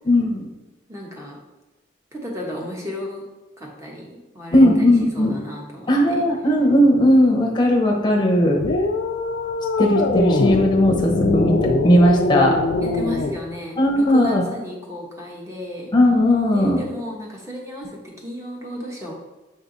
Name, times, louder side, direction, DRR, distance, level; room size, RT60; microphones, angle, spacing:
voice 1, 0.1-0.5 4.5-5.3 5.9-8.6 9.8-12.6 13.8-14.4 15.9-16.8, left 1 dB, 25° left, 0 dB, 0.9 m, -17 dB
voice 2, 0.9-1.4 2.1-3.2 3.6-4.9 5.1-6.2 12.8-15.9 16.5-19.1, equal, 15° right, -2 dB, 1.2 m, -34 dB
sound 1, 8.6-13.4, left 2 dB, 55° left, 0.4 m, -22 dB
6.9 x 3.5 x 3.9 m, 1.1 s
head